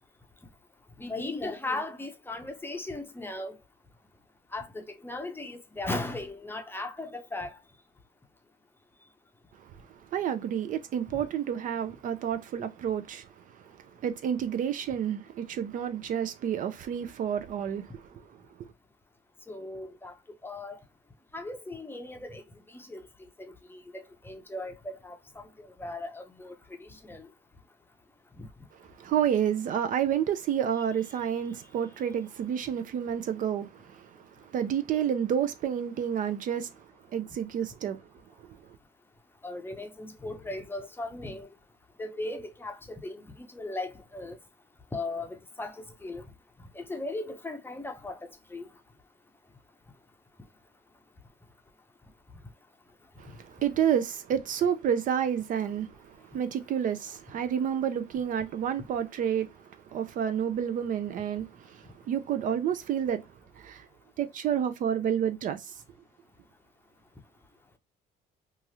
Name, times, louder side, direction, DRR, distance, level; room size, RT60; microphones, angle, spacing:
voice 1, 1.0-3.6 4.5-7.6 19.5-20.1 20.4-20.8 21.3-22.4 22.7-23.0 23.5-25.4 25.8-26.5 26.8-27.3 39.4-41.5 42.0-42.8 43.0-44.4 44.9-45.7 46.0-46.2 46.8-48.2 48.5-48.7, left 2 dB, 15° left, 0.6 m, -37 dB
voice 2, 9.6-18.7 28.8-38.0 38.5-38.6 53.2-63.3 63.6-63.9 64.2-65.7, right 9 dB, 50° right, 0.4 m, -30 dB
3.0 x 2.4 x 2.7 m
cardioid pair, 110°, 17 cm